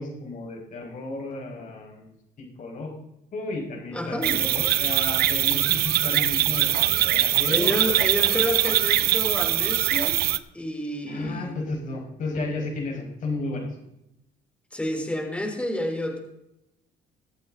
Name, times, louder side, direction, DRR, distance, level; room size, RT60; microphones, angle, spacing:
voice 1, 0.0-2.1 2.4-2.9 3.3-7.8 11.1-13.8, left 2 dB, 50° left, 1 dB, 5.2 m, -33 dB
voice 2, 3.9-4.4 7.5-10.3 10.5-11.5 14.7-16.2, left 1 dB, 5° left, 2 dB, 3.4 m, -29 dB
sound 1, 4.2-10.4, right 14 dB, 70° right, 0.7 m, -22 dB
22.5 x 8.6 x 3.8 m, 0.85 s
cardioid pair, 110°, 17 cm